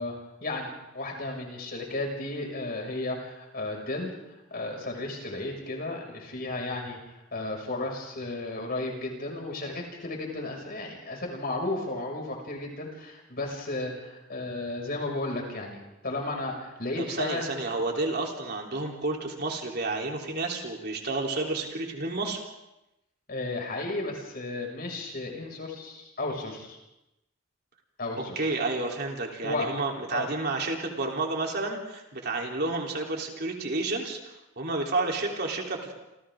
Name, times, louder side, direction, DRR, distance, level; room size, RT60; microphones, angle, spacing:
voice 1, 0.0-4.1 4.5-17.5 23.3-26.8 28.0-28.5 29.4-29.8 30.1-30.3, left 2 dB, 45° left, 1 dB, 6.3 m, -34 dB
voice 2, 17.0-22.4 28.4-35.9, right 2 dB, 50° right, 0 dB, 3.7 m, -30 dB
28.0 x 28.0 x 3.8 m, 0.94 s
head